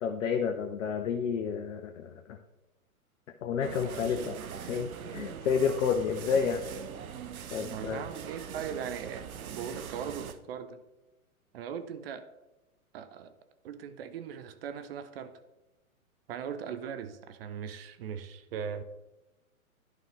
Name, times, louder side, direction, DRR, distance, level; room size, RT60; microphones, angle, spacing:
voice 1, 0.0-2.4 3.4-4.4 4.6-6.6 7.5-8.0, left 6 dB, 60° left, 6 dB, 0.8 m, -30 dB
sound 1, 3.6-10.3, right 7 dB, 75° right, 0.8 m, -41 dB
voice 2, 7.6-10.8 11.5-12.3 12.9-13.3 13.6-15.3 16.3-18.8, right 7 dB, 45° right, 10 dB, 0.6 m, -39 dB
11.5 x 5.4 x 3.4 m, 1.0 s
hypercardioid pair, 115°, 43 cm